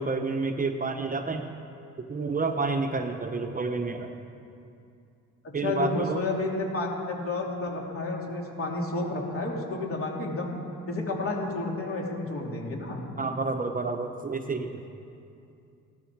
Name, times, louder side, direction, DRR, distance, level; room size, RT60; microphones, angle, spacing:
voice 1, 0.0-1.5 2.0-4.1 5.5-6.2 13.2-14.8, right 3 dB, 30° right, 5 dB, 0.9 m, -29 dB
voice 2, 5.6-10.6 10.9-13.0, left 2 dB, 45° left, -1 dB, 2.8 m, -31 dB
16.0 x 12.5 x 4.7 m, 2.6 s
cardioid pair, 90°, 30 cm